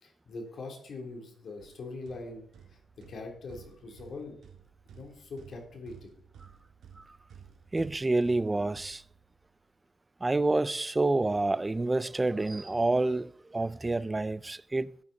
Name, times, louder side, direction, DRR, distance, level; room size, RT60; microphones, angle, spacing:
voice 1, 0.0-4.4 4.9-6.1, left 3 dB, 55° left, 2.8 m, -43 dB
sound 1, 1.6-9.6, right 7 dB, 80° right, 1.7 m, -54 dB
voice 2, 7.7-9.0 10.2-15.0, right 2 dB, 15° right, 0.3 m, -28 dB
14.5 x 8.5 x 3.9 m
cardioid pair, 130°, 0 cm